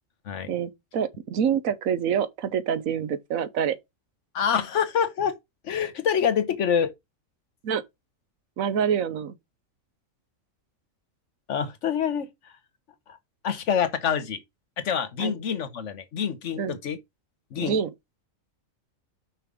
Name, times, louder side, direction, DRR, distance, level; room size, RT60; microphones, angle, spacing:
voice 1, 0.5-3.8 7.6-7.8 8.6-9.4 15.2-15.4 16.6-16.8 17.6-17.9, right 8 dB, 85° right, 1.2 m, -26 dB
voice 2, 4.3-5.4 5.6-6.9 11.5-12.3 13.1-13.2 13.4-14.4 14.8-17.0 17.5-17.8, left 7 dB, 65° left, 1.2 m, -26 dB
5.9 x 5.2 x 4.8 m
omnidirectional pair, 1.4 m